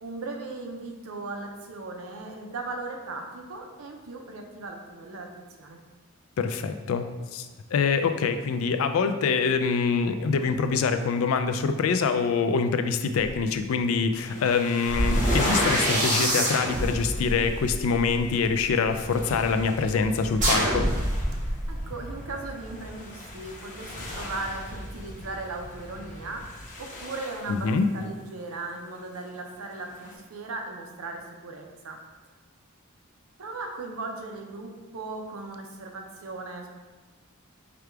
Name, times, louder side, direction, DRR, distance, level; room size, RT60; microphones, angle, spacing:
voice 1, 0.0-5.8 21.3-32.0 33.4-36.7, right 3 dB, 70° right, 2 dB, 0.6 m, -38 dB
voice 2, 6.4-7.1 7.3-7.5 7.7-20.9 27.5-27.9, left 5 dB, 70° left, 8 dB, 0.3 m, -25 dB
sound 1, 13.3-13.4 14.8-18.9 20.3-21.8, right 1 dB, 35° right, 1.5 m, -26 dB
sound 2, 14.2-30.2, left 1 dB, 40° left, 0.9 m, -39 dB
4.9 x 2.3 x 4.5 m, 1.3 s
head